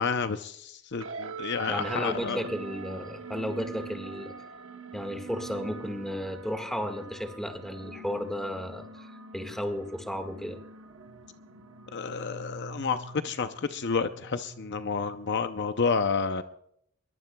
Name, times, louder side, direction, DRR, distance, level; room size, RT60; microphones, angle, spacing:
voice 1, 0.0-2.4 11.9-16.4, left 5 dB, 55° left, 9 dB, 0.6 m, -30 dB
sound 1, 1.0-15.8, right 4 dB, 70° right, 1.0 m, -43 dB
voice 2, 1.7-4.3 4.9-10.6, equal, ahead, 5 dB, 1.7 m, -34 dB
23.5 x 22.0 x 2.3 m, 0.72 s
head